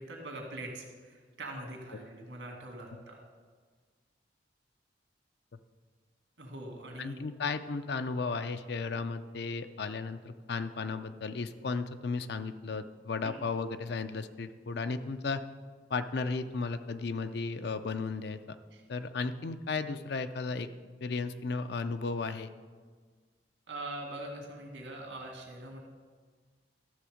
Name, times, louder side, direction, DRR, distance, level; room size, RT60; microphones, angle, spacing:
voice 1, 0.0-3.2 6.4-7.2 13.2-13.3 18.7-18.8 23.7-25.8, right 1 dB, 80° right, 1 dB, 2.2 m, -43 dB
voice 2, 7.0-15.4 15.9-18.6 18.9-20.7 21.0-22.5, left 4 dB, 60° left, 10 dB, 0.5 m, -34 dB
12.5 x 7.0 x 5.0 m, 1.5 s
head